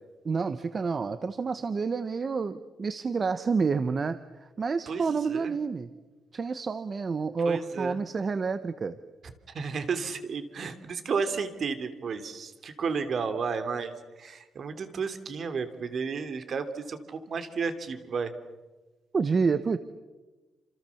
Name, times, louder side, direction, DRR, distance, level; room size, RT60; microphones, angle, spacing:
voice 1, 0.2-5.9 6.3-9.0 19.1-19.8, right 5 dB, 35° right, 12 dB, 1.1 m, -29 dB
voice 2, 4.9-5.5 7.4-8.0 9.2-18.3, right 5 dB, 50° right, 9 dB, 3.0 m, -33 dB
29.5 x 27.5 x 7.2 m, 1.2 s
cardioid pair, 135°, 0 cm